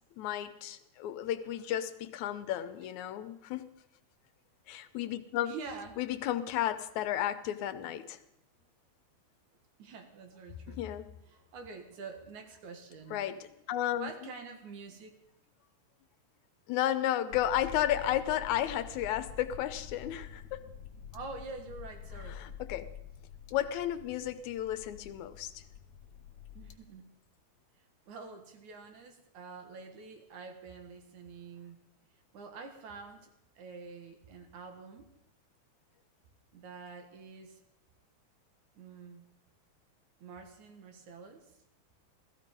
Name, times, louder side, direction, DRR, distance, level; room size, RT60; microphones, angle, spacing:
voice 1, 0.2-3.7 4.7-5.5 6.0-8.2 10.8-11.1 13.1-14.1 16.7-20.7 22.3-22.9 23.5-25.6, left 12 dB, 80° left, 12 dB, 2.2 m, -33 dB
voice 2, 5.4-6.0 9.8-10.8 11.3-13.2 14.0-15.2 21.1-22.4 26.5-27.1 28.1-31.8 32.3-33.3 33.6-35.1 36.5-37.6 38.7-39.2 40.2-41.5, right 4 dB, 80° right, 5 dB, 3.1 m, -46 dB
sound 1, 17.3-26.7, left 8 dB, 65° left, 1.1 m, -48 dB
15.5 x 15.0 x 5.3 m, 0.83 s
omnidirectional pair, 3.4 m